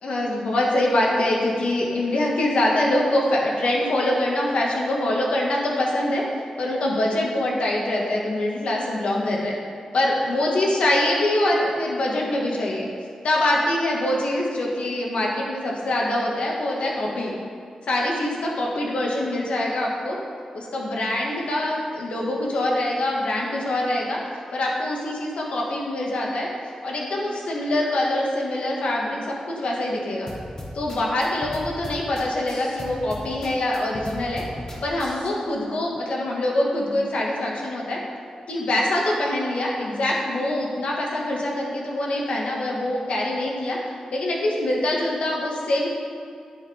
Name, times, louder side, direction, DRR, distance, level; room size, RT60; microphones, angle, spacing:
voice 1, 0.0-6.2 6.6-9.6 9.9-12.9 13.2-17.3 17.9-20.2 20.5-24.2 24.5-26.5 26.8-30.3 30.7-34.4 34.8-38.0 38.5-43.8 44.1-45.9, left 1 dB, 75° left, -2 dB, 1.9 m, -24 dB
sound 1, 30.3-35.3, left 1 dB, 25° left, 1.4 m, -37 dB
9.8 x 9.3 x 3.6 m, 2.4 s
wide cardioid pair, 155°, 2 cm